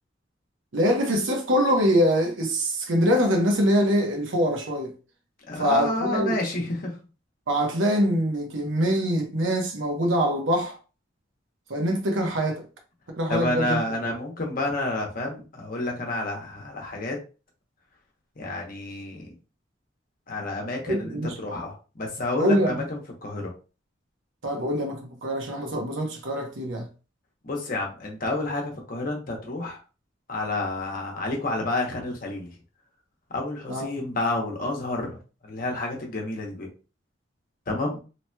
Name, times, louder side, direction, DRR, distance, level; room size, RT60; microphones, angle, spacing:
voice 1, 0.7-4.9 5.6-6.4 7.5-10.8 11.7-12.6 13.2-13.8 20.9-21.4 22.4-22.8 24.4-26.9 33.7-33.9, equal, 80° right, 0.9 m, -24 dB
voice 2, 5.5-6.9 13.3-17.2 18.4-19.3 20.3-23.5 27.4-29.8 30.3-32.5 33.3-35.2 35.4-36.7 37.7-38.0, left 2 dB, 50° left, 0.9 m, -29 dB
2.9 x 2.9 x 2.2 m
head